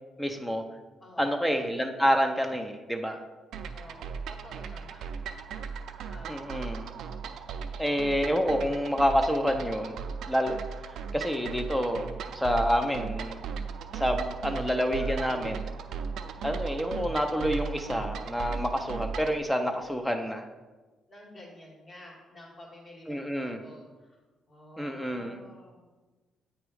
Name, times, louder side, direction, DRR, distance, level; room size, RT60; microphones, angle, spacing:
voice 1, 0.2-0.6 1.2-3.2 6.3-6.9 7.8-9.9 10.3-10.6 11.1-12.1 12.3-13.4 13.9-15.7 16.4-20.5 23.1-23.6 24.8-25.4, equal, 5° left, 4 dB, 0.5 m, -28 dB
voice 2, 1.0-1.5 3.7-5.3 6.1-6.6 8.6-8.9 15.0-15.5 21.1-24.2 24.5-25.9, left 1 dB, 35° left, -1 dB, 1.8 m, -50 dB
sound 1, 3.5-19.4, right 6 dB, 75° right, 0.4 m, -37 dB
8.1 x 3.0 x 4.8 m, 1.2 s
cardioid pair, 90°, 0 cm